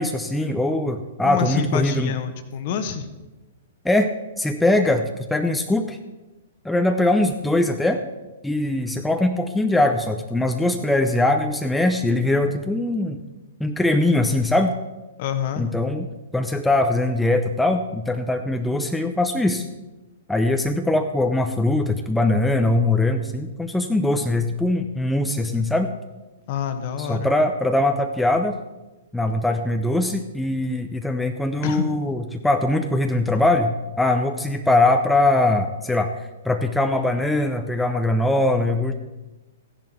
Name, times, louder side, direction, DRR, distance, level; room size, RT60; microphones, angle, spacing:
voice 1, 0.0-2.1 3.8-4.1 4.4-6.0 6.6-8.0 8.4-13.2 13.6-14.8 15.6-16.1 16.3-19.7 20.3-25.9 27.0-28.6 29.1-36.1 36.4-38.9, left 2 dB, 5° left, 5 dB, 0.7 m, -21 dB
voice 2, 1.2-3.1 15.2-15.7 26.5-27.3 31.6-31.9, left 7 dB, 45° left, 9 dB, 1.3 m, -26 dB
14.5 x 10.5 x 4.5 m, 1.1 s
figure-of-eight pair, 110°, 0 cm